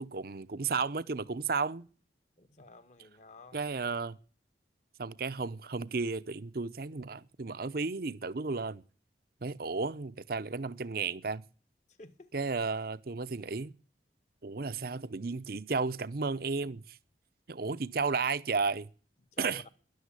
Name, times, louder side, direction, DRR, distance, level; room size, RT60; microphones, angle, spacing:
voice 1, 0.0-1.9 3.5-4.2 5.0-8.8 9.4-11.4 12.3-13.7 14.4-17.0 17.5-18.9 19.4-19.6, right 4 dB, 55° right, 0.7 m, -33 dB
voice 2, 2.4-3.7 11.9-12.3 19.3-19.7, left 2 dB, 40° left, 1.2 m, -51 dB
13.0 x 11.0 x 9.7 m
head